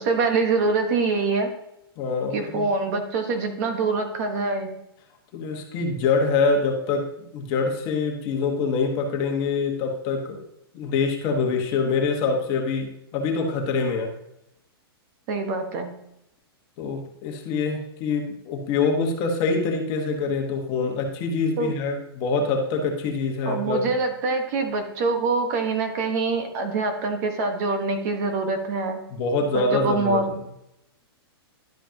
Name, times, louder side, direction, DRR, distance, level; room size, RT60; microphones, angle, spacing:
voice 1, 0.0-1.5 2.3-4.7 15.3-15.9 21.6-21.7 23.4-29.0 29.5-30.3, right 3 dB, 40° right, 5 dB, 1.4 m, -25 dB
voice 2, 2.0-2.7 5.3-7.1 7.3-10.4 10.7-14.1 16.8-23.8 29.1-30.2, left 4 dB, 35° left, 2 dB, 1.4 m, -25 dB
11.5 x 5.1 x 2.9 m, 0.82 s
hypercardioid pair, 150°, 13 cm